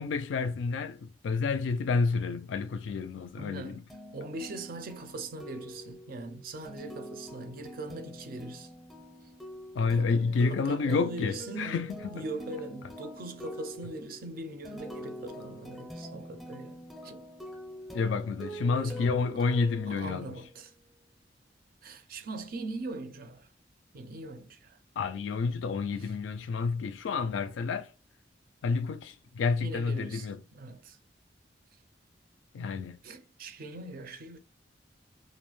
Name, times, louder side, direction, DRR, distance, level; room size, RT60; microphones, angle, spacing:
voice 1, 0.0-3.8 9.7-12.1 17.9-20.4 25.0-27.9 28.6-30.4 32.5-33.0, left 4 dB, 75° left, 0.3 m, -29 dB
voice 2, 3.4-3.8 4.1-8.7 9.2-9.3 9.8-11.8 12.1-17.3 18.8-19.1 19.9-20.7 21.8-23.5 23.9-24.8 29.6-31.0 33.0-34.4, right 2 dB, 50° right, 0.4 m, -41 dB
sound 1, 3.9-20.6, equal, ahead, 0.5 m, -45 dB
2.4 x 2.1 x 3.0 m
head